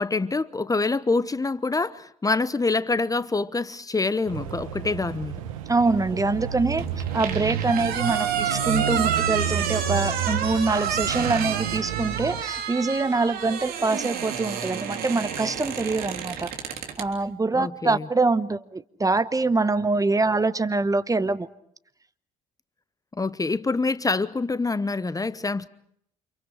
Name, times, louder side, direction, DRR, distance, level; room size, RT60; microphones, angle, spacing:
voice 1, 0.0-5.4 17.5-18.1 23.1-25.7, left 3 dB, 20° left, 1.0 m, -26 dB
sound 1, 4.3-12.4, right 8 dB, 80° right, 1.6 m, -31 dB
voice 2, 5.7-16.5 17.0-21.5, right 3 dB, 20° right, 1.1 m, -24 dB
sound 2, 6.8-17.1, right 8 dB, 60° right, 3.4 m, -30 dB
29.5 x 27.5 x 5.0 m
hypercardioid pair, 50°, 17 cm